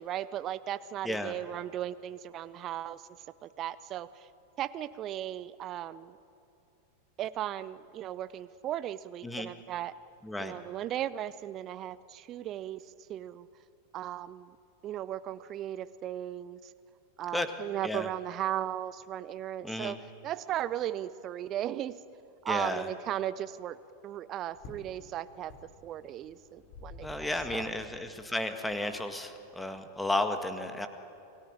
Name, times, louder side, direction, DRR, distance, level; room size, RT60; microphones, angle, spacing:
voice 1, 0.0-3.1 3.4-4.3 4.6-6.2 7.2-9.9 10.4-13.5 13.9-14.6 14.8-16.7 17.2-20.0 20.2-22.0 22.4-23.8 24.0-25.5 25.8-27.7, right 12 dB, 35° right, 16 dB, 0.6 m, -36 dB
voice 2, 10.2-10.6 17.3-17.5 17.8-18.1 19.6-20.0 22.5-22.9 27.0-30.9, left 1 dB, 5° left, 8 dB, 1.8 m, -33 dB
sound 1, 24.5-29.8, left 2 dB, 40° left, 4.8 m, -51 dB
29.0 x 18.5 x 9.0 m, 2.5 s
figure-of-eight pair, 90°, 0 cm